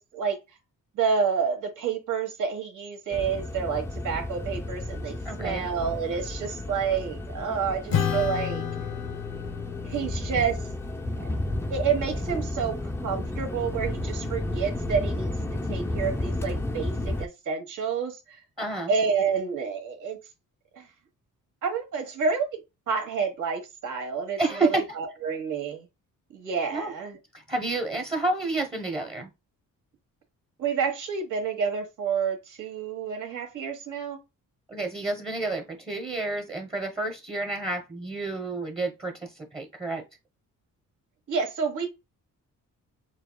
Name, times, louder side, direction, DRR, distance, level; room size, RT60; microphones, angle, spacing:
voice 1, 0.9-8.6 9.8-10.6 11.2-11.3 11.7-12.8 13.0-15.3 15.7-18.4 18.9-20.2 20.7-20.9 21.6-22.6 22.9-25.8 26.3-27.2 30.6-34.2 41.3-41.9, right 6 dB, 65° right, 1.6 m, -29 dB
sound 1, 3.1-17.3, left 1 dB, 10° left, 0.5 m, -32 dB
voice 2, 5.2-5.7 18.6-18.9 24.4-24.8 26.7-26.9 27.3-29.3 34.7-40.0, right 2 dB, 15° right, 1.0 m, -30 dB
Acoustic guitar / Strum, 7.9-12.7, left 8 dB, 75° left, 1.0 m, -33 dB
6.5 x 2.4 x 2.3 m
cardioid pair, 105°, 33 cm